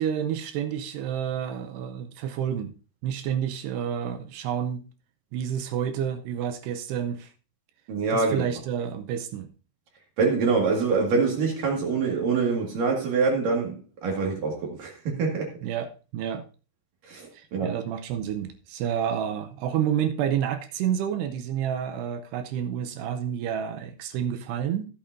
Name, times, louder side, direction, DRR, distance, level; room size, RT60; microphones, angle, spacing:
voice 1, 0.0-2.7 3.0-4.8 5.3-7.3 8.1-9.5 15.6-16.4 17.3-24.9, right 9 dB, 80° right, 2.5 m, -29 dB
voice 2, 7.9-8.4 10.2-15.5 17.0-17.8, right 4 dB, 55° right, 3.1 m, -25 dB
16.0 x 8.6 x 2.6 m
omnidirectional pair, 5.4 m